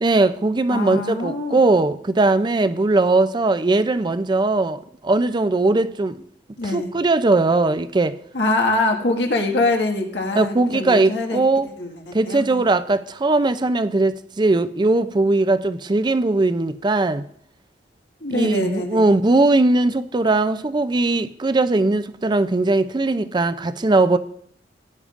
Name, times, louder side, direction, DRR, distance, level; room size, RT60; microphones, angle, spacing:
voice 1, 0.0-6.2 6.7-8.2 10.4-11.7 12.1-17.2 18.3-24.2, right 2 dB, 25° right, 0.5 m, -19 dB
voice 2, 0.7-1.6 6.6-6.9 8.3-11.4 11.8-12.6 18.2-19.1, left 2 dB, 85° left, 1.8 m, -24 dB
16.0 x 9.5 x 2.5 m
head